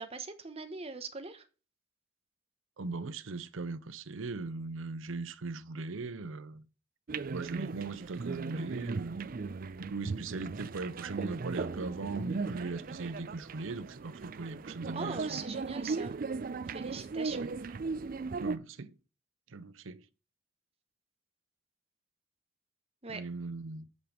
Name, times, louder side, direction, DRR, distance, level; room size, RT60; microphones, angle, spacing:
voice 1, 0.0-1.5 14.9-16.2 16.7-17.5 23.0-23.2, right 4 dB, 30° right, 1.0 m, -41 dB
voice 2, 2.8-6.7 7.3-9.2 9.8-15.4 17.3-17.6 18.4-18.9 19.5-20.1 23.1-23.9, right 3 dB, 85° right, 0.7 m, -39 dB
sound 1, 7.1-18.6, right 4 dB, 45° right, 0.4 m, -37 dB
8.3 x 5.2 x 4.9 m
head